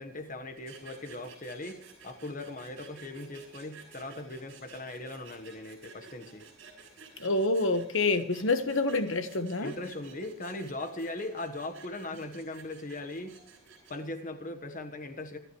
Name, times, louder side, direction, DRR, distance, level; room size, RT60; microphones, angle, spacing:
voice 1, 0.0-6.4 9.6-13.3 13.9-15.4, left 2 dB, 40° left, 1.3 m, -39 dB
sound 1, 0.6-14.1, right 5 dB, 65° right, 6.4 m, -52 dB
voice 2, 7.2-9.7, left 2 dB, 65° left, 1.3 m, -27 dB
26.5 x 11.5 x 3.2 m
head